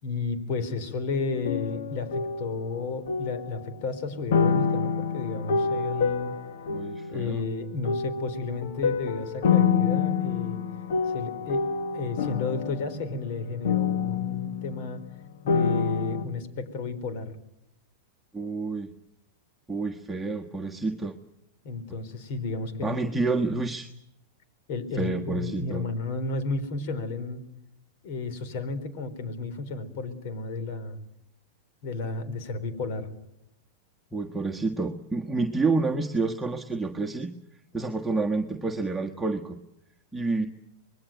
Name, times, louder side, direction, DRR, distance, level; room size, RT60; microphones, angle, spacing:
voice 1, 0.0-6.3 7.1-10.6 11.1-11.7 11.9-15.0 15.4-17.4 21.6-23.2 24.7-27.4 28.0-31.0 31.8-33.1, left 3 dB, 60° left, 13 dB, 4.3 m, -32 dB
sound 1, 1.3-3.8 4.3-7.4 7.8-15.2 15.5-16.3, left 6 dB, 75° left, 1.8 m, -27 dB
voice 2, 6.7-7.4 18.3-18.9 19.7-21.1 22.8-23.9 24.9-25.8 34.1-37.3 37.7-39.6 40.1-40.5, right 3 dB, 5° right, 0 dB, 1.6 m, -29 dB
25.0 x 21.0 x 9.3 m, 0.81 s
hypercardioid pair, 115°, 0 cm